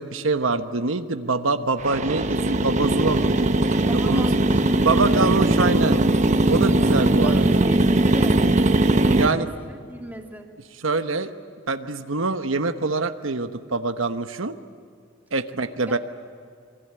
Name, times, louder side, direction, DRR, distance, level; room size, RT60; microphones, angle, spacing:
voice 1, 0.0-3.5 4.1-4.3 4.8-6.0 6.5-7.6 9.1-9.5 10.8-11.3 11.7-14.5 15.3-16.0, right 3 dB, 80° right, 8 dB, 1.1 m, -24 dB
sound 1, 1.8-9.3, right 2 dB, 35° right, 1.1 m, -20 dB
voice 2, 3.9-5.0 7.0-8.4 9.0-10.5 15.8-16.0, right 1 dB, 10° right, 2 dB, 2.7 m, -37 dB
27.0 x 22.5 x 8.8 m, 2.2 s
head